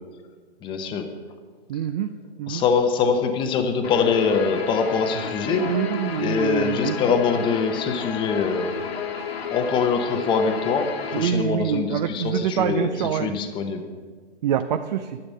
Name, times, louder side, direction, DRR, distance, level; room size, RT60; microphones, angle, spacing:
voice 1, 0.6-1.1 2.5-5.7 6.2-8.7 9.5-13.8, left 5 dB, 15° left, 5 dB, 0.8 m, -23 dB
voice 2, 1.7-2.1 2.4-2.6 5.5-7.0 11.1-13.3 14.4-15.2, right 9 dB, 40° right, 9 dB, 0.5 m, -25 dB
Guitar, 3.8-11.2, left 7 dB, 65° left, 1.8 m, -32 dB
11.0 x 10.5 x 5.5 m, 1.5 s
hypercardioid pair, 140°, 33 cm